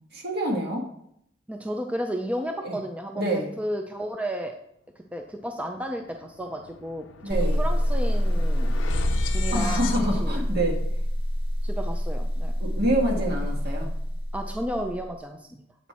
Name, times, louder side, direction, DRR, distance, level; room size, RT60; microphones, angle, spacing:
voice 1, 0.1-0.9 2.6-2.8 3.2-3.5 7.2-7.6 9.5-10.8 12.6-13.9, right 1 dB, 55° right, 0 dB, 1.7 m, -26 dB
voice 2, 1.5-4.6 5.1-8.8 9.3-9.9 10.2-10.4 11.6-12.5 14.3-15.6, equal, 5° right, 3 dB, 0.4 m, -33 dB
sound 1, 5.7-5.9 6.2-12.4, left 4 dB, 75° left, 0.5 m, -36 dB
sound 2, 7.3-15.1, equal, 30° right, 0.9 m, -26 dB
8.1 x 4.4 x 4.3 m, 0.71 s
head